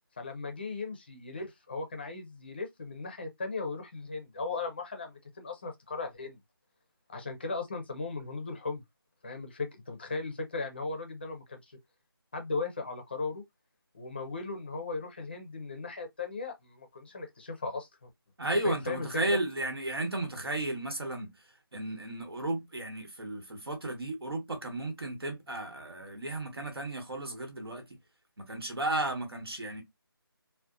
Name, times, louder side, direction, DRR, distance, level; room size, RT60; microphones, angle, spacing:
voice 1, 0.2-6.4 7.1-8.8 9.2-11.8 12.3-13.4 13.9-18.1 18.6-19.4, left 3 dB, 25° left, 0.5 m, -37 dB
voice 2, 18.4-21.3 21.7-27.8 28.5-29.8, right 2 dB, 80° right, 1.2 m, -34 dB
2.6 x 2.1 x 2.4 m
figure-of-eight pair, 165°, 13 cm